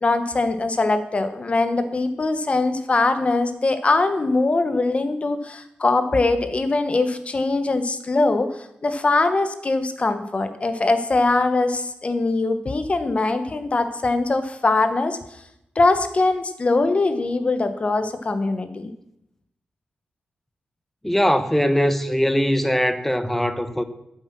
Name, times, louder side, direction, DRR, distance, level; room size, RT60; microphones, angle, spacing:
voice 1, 0.0-15.2 15.7-18.9, left 3 dB, 35° left, 1.3 m, -22 dB
voice 2, 21.0-23.8, equal, 5° left, 1.0 m, -21 dB
12.5 x 7.9 x 6.1 m
cardioid pair, 90°, 3 cm